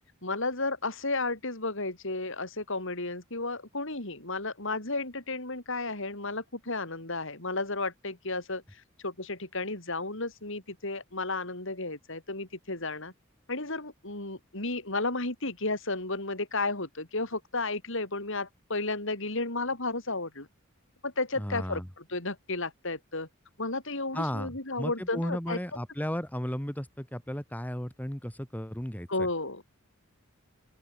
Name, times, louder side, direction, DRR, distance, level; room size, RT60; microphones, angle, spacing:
voice 1, 0.2-13.1 13.5-20.5 21.0-23.3 23.6-25.6 29.1-29.6, left 2 dB, 65° left, 6.0 m, -33 dB
voice 2, 21.4-21.9 24.1-29.1, equal, 10° left, 2.7 m, -34 dB
open air
head